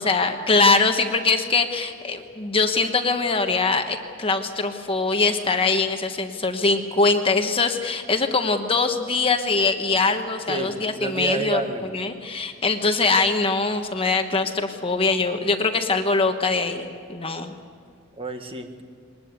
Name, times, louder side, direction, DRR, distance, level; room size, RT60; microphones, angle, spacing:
voice 1, 0.0-11.6 11.9-17.5, left 3 dB, 25° left, 6 dB, 1.3 m, -22 dB
voice 2, 10.5-11.9 18.2-18.9, right 2 dB, 25° right, 6 dB, 1.6 m, -30 dB
22.0 x 20.0 x 8.3 m, 2.2 s
head